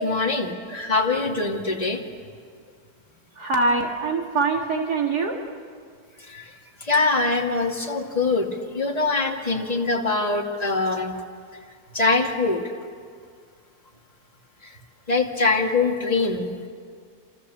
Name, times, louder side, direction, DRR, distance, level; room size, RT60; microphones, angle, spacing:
voice 1, 0.0-2.0 6.3-6.5 6.8-11.2 11.9-12.6 14.6-14.7 15.1-16.7, left 3 dB, 25° left, 0 dB, 2.5 m, -23 dB
voice 2, 3.4-5.4, right 3 dB, 75° right, 1 dB, 2.4 m, -23 dB
28.5 x 28.0 x 7.2 m, 2.1 s
omnidirectional pair, 1.7 m